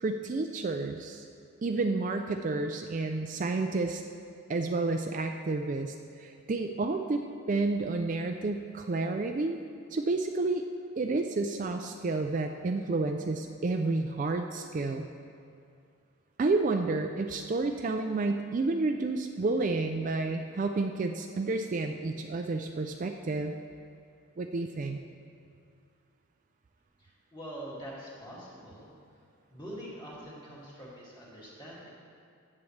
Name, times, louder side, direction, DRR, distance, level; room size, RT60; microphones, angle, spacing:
voice 1, 0.0-1.2 1.6-4.0 4.5-9.6 9.9-10.6 11.0-15.1 16.4-23.6 24.4-25.0, right 3 dB, 35° right, 5 dB, 0.3 m, -30 dB
voice 2, 27.0-28.9 29.5-31.9, equal, 20° left, -7 dB, 2.3 m, -44 dB
14.5 x 8.5 x 3.2 m, 2.4 s
head